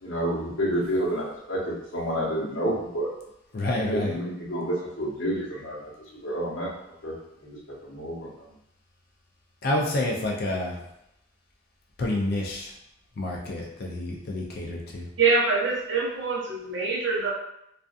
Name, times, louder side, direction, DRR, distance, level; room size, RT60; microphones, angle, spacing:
voice 1, 0.0-3.1 3.9-5.9 6.2-6.7 7.0-7.1 7.4-8.3, equal, 65° left, -6 dB, 0.9 m, -29 dB
voice 2, 3.5-4.1 9.6-10.8 12.0-12.7 13.2-15.1, left 1 dB, 45° left, -1 dB, 0.4 m, -28 dB
voice 3, 15.2-17.3, right 4 dB, 60° right, -4 dB, 0.7 m, -24 dB
2.5 x 2.4 x 2.3 m, 0.81 s
head